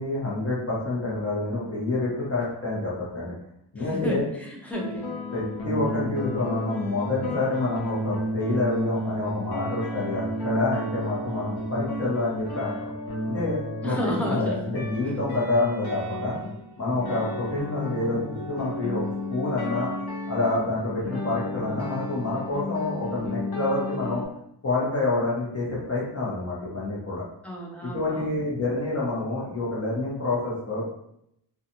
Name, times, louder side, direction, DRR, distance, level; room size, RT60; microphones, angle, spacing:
voice 1, 0.0-3.3 3.7-4.2 5.3-12.9 13.3-16.4 16.8-19.0 19.3-19.9 20.3-24.2 24.6-27.2 27.8-30.9, left 2 dB, 30° left, -7 dB, 0.9 m, -28 dB
voice 2, 3.8-5.1 13.8-14.7 27.4-28.5, left 1 dB, 5° left, -2 dB, 0.3 m, -32 dB
sound 1, 4.7-24.3, left 1 dB, 55° left, 0.7 m, -32 dB
2.4 x 2.3 x 2.8 m, 0.77 s
wide cardioid pair, 155°, 45 cm